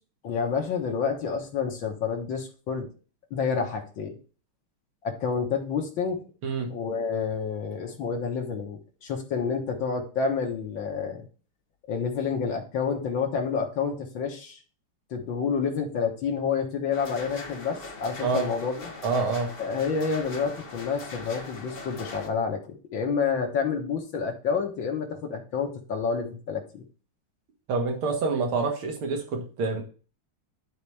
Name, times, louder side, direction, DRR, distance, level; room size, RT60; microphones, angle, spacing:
voice 1, 0.2-2.9 3.3-4.2 5.0-6.2 6.7-11.3 11.9-14.6 15.1-18.9 19.6-26.8, left 5 dB, 60° left, 2 dB, 2.0 m, -29 dB
voice 2, 6.4-6.7 18.2-18.5 19.0-19.5 27.7-29.8, right 4 dB, 70° right, 2 dB, 2.4 m, -27 dB
sound 1, 16.9-22.3, left 3 dB, 40° left, 0.8 m, -41 dB
11.5 x 4.1 x 3.4 m, 0.37 s
omnidirectional pair, 2.4 m